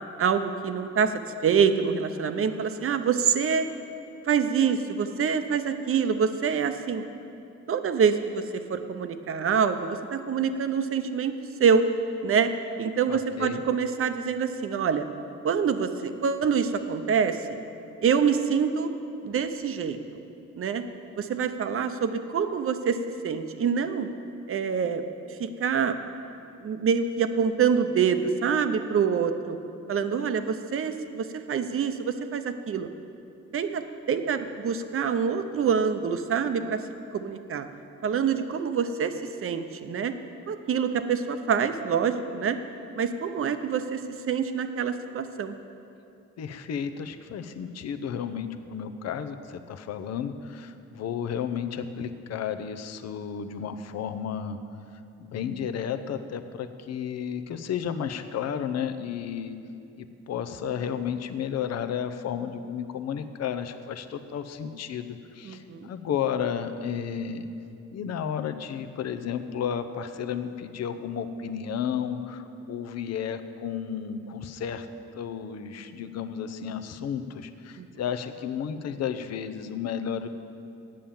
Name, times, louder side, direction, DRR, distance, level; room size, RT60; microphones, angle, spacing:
voice 1, 0.2-1.1 1.4-3.7 4.3-7.0 7.7-8.4 8.7-11.3 11.6-11.9 12.2-12.5 12.8-15.0 15.4-17.4 18.0-18.9 19.2-20.0 20.6-20.8 21.2-23.0 23.2-24.1 24.5-25.0 25.4-26.0 26.6-29.6 29.9-32.9 33.5-36.8 37.1-37.7 38.0-40.1 40.5-42.6 43.0-44.0 44.3-45.5 65.4-65.9 77.8-77.9, right 6 dB, 45° right, 9 dB, 0.7 m, -26 dB
voice 2, 13.1-13.6 46.4-54.6 55.2-59.6 60.0-67.5 67.9-74.9 75.1-80.3, left 8 dB, 60° left, 8 dB, 0.7 m, -32 dB
8.6 x 7.6 x 7.1 m, 2.7 s
cardioid pair, 90°, 30 cm